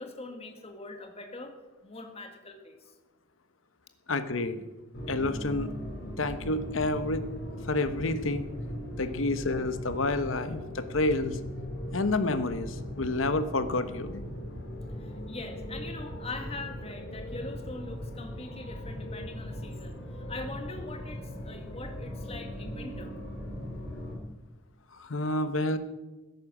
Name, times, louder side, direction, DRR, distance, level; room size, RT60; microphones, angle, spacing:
voice 1, 0.0-1.5 1.8-2.9 9.1-9.2 15.0-23.1, left 2 dB, 30° left, 5 dB, 1.8 m, -42 dB
voice 2, 4.1-4.6 5.1-5.7 6.2-7.3 7.7-8.4 9.0-11.4 11.9-14.2 24.9-25.8, left 2 dB, 80° left, 11 dB, 1.0 m, -29 dB
sound 1, 4.9-24.1, equal, 55° left, 3.0 m, -39 dB
13.5 x 10.5 x 6.1 m, 1.1 s
head